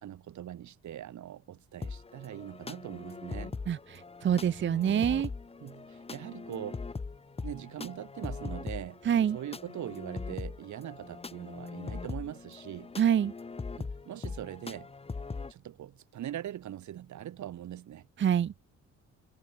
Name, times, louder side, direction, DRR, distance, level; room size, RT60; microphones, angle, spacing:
voice 1, 0.0-3.6 5.6-6.8 7.4-9.0 9.3-12.9 13.8-14.9 15.5-18.1, right 11 dB, 70° right, 3.8 m, -41 dB
sound 1, 1.8-15.5, left 4 dB, 20° left, 0.9 m, -41 dB
voice 2, 3.7-5.3 9.0-9.4 13.0-13.3 18.2-18.5, right 9 dB, 40° right, 0.7 m, -26 dB
cardioid pair, 90°, 30 cm